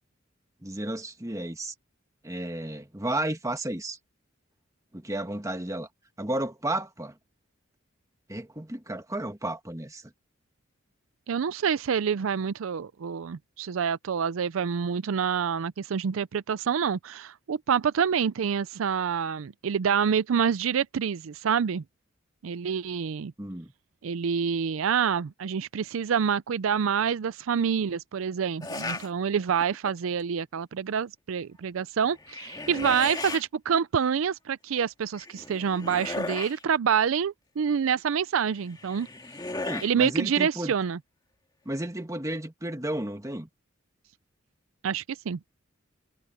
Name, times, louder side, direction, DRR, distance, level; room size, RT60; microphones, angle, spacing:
voice 1, 0.6-1.7 2.2-4.0 4.9-5.9 6.2-7.1 8.3-10.0 23.4-23.7 39.6-40.7 41.6-43.5, right 1 dB, 15° right, 1.6 m, -32 dB
voice 2, 11.3-21.8 22.4-23.3 24.0-39.1 39.8-41.0 44.8-45.4, right 7 dB, 80° right, 0.4 m, -27 dB
sound 1, 28.6-29.1 29.6-30.1 32.1-33.4 35.1-36.6 38.6-39.9, left 2 dB, 20° left, 1.9 m, -36 dB
head